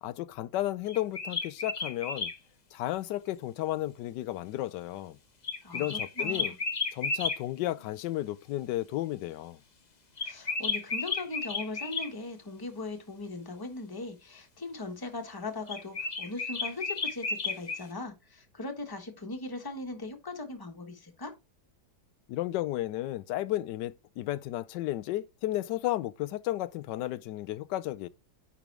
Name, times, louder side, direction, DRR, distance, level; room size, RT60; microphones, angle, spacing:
voice 1, 0.0-2.3 2.7-5.2 5.7-6.5 6.9-9.6 22.3-28.1, left 15 dB, 90° left, 1.2 m, -33 dB
sound 1, 0.9-2.4 5.4-7.4 10.2-12.1 15.7-17.8, left 4 dB, 35° left, 0.8 m, -33 dB
voice 2, 5.6-6.6 10.2-21.3, left 2 dB, 15° left, 1.2 m, -39 dB
9.9 x 3.6 x 4.6 m
omnidirectional pair, 1.8 m